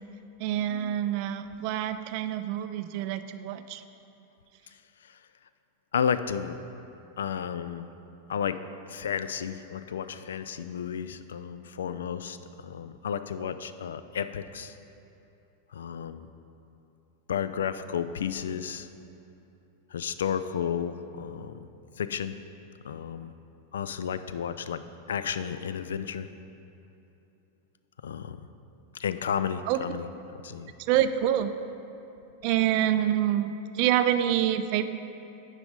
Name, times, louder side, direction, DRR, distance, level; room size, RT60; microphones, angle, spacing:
voice 1, 0.4-3.8 29.7-29.8 30.9-31.5 32.4-34.8, right 11 dB, 45° right, 10 dB, 0.4 m, -26 dB
voice 2, 5.9-6.6 7.2-7.9 8.3-8.6 8.9-14.7 15.7-16.3 17.3-18.9 19.9-21.6 22.0-22.4 22.8-23.3 23.7-24.8 25.1-26.3 28.0-28.4 29.0-30.0 30.4-30.7, left 8 dB, 65° left, 12 dB, 0.3 m, -32 dB
9.2 x 4.9 x 5.1 m, 2.9 s
figure-of-eight pair, 90°, 0 cm